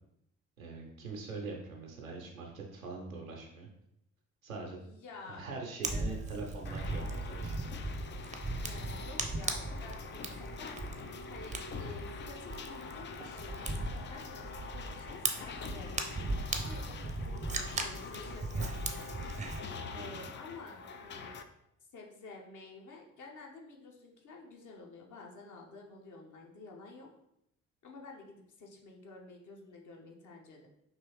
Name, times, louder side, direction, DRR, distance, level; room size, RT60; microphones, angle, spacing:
voice 1, 0.6-3.7 4.4-4.8 5.2-7.7 19.9-20.3, right 4 dB, 85° right, 0 dB, 0.7 m, -43 dB
voice 2, 4.8-5.4 5.9-6.2 8.6-16.0 16.6-18.7 19.9-21.3 21.9-27.1 27.8-30.7, left 3 dB, 50° left, 0 dB, 1.0 m, -50 dB
Fire, 5.8-19.6, right 3 dB, 20° right, 0.6 m, -38 dB
sound 1, 6.6-21.4, left 4 dB, 30° left, 0.4 m, -45 dB
4.7 x 3.0 x 3.1 m, 0.79 s
figure-of-eight pair, 40°, 40 cm